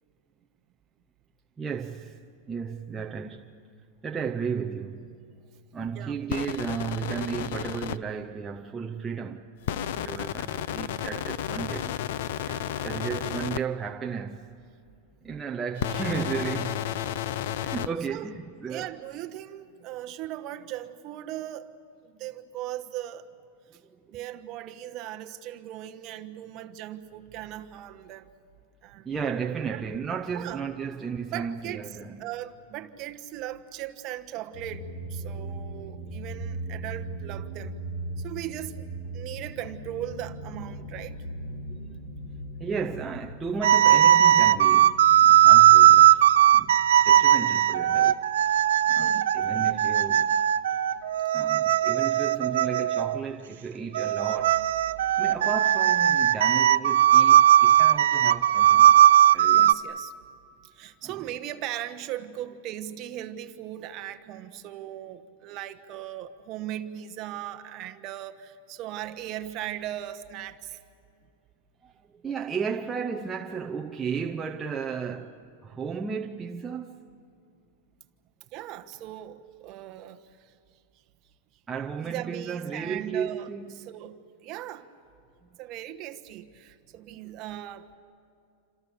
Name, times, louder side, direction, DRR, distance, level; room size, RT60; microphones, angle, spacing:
voice 1, 1.6-2.2 2.5-3.5 4.0-5.2 5.7-12.0 12.8-14.5 15.2-16.9 17.6-19.0 24.1-24.2 29.1-32.3 41.7-41.8 42.6-46.8 47.0-48.3 48.9-50.4 51.3-59.0 59.3-59.7 61.0-61.1 71.8-77.0 81.7-83.9, right 6 dB, 10° right, 0.7 m, -34 dB
sound 1, 6.3-8.0 9.7-13.6 15.8-17.9, left 12 dB, 60° left, 0.6 m, -32 dB
voice 2, 18.7-21.7 22.0-23.3 24.1-28.3 28.8-29.4 29.7-29.8 30.3-30.6 31.3-31.9 32.2-37.7 38.2-38.9 39.1-41.2 46.2-46.3 49.0-49.3 59.1-59.2 59.5-60.1 60.7-70.8 78.5-80.5 82.0-83.5 83.8-84.2 84.4-84.9 85.6-87.9, right 12 dB, 35° right, 1.2 m, -38 dB
sound 2, 34.5-48.2, right 2 dB, 25° left, 7.5 m, -39 dB
sound 3, 43.6-53.2 53.9-59.7, right 11 dB, 85° right, 0.7 m, -19 dB
28.0 x 27.0 x 6.9 m
supercardioid pair, 165°, 0 cm